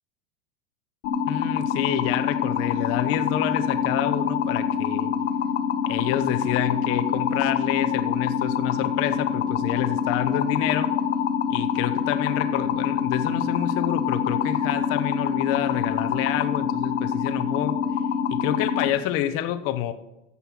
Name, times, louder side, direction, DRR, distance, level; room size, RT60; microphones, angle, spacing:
sound 1, 1.0-18.9, left 7 dB, 65° left, 1.2 m, -25 dB
voice 1, 1.3-5.1 5.9-10.9 11.5-17.8 18.3-19.9, left 12 dB, 40° left, 9 dB, 0.9 m, -28 dB
14.5 x 5.6 x 6.0 m, 0.97 s
supercardioid pair, 140°, 37 cm